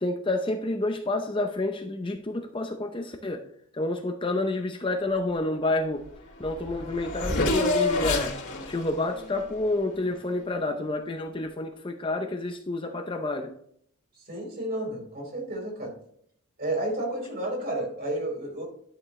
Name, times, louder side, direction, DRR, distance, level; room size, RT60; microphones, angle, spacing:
voice 1, 0.0-3.4 3.7-6.0 6.4-8.3 8.7-13.5, left 2 dB, 25° left, 5 dB, 0.7 m, -29 dB
Race car auto racing / Accelerating revving vroom, 6.1-6.2 6.4-10.4, left 2 dB, 55° left, 2.4 m, -29 dB
voice 2, 14.2-15.9 16.6-18.6, right 1 dB, 45° right, 0 dB, 4.4 m, -31 dB
11.0 x 7.1 x 3.2 m, 0.66 s
head